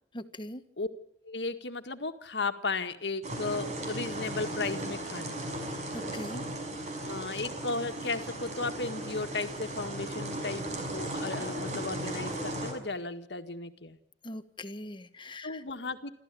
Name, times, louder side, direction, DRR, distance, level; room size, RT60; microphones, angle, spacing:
voice 1, 0.1-0.6 5.9-6.4 14.2-15.6, left 1 dB, 30° left, 11 dB, 1.4 m, -41 dB
voice 2, 1.2-5.4 7.0-14.0 15.4-16.1, left 3 dB, 70° left, 8 dB, 1.9 m, -35 dB
sound 1, 3.2-12.7, right 1 dB, 40° right, 6.1 m, -36 dB
28.0 x 14.0 x 8.5 m, 0.72 s
head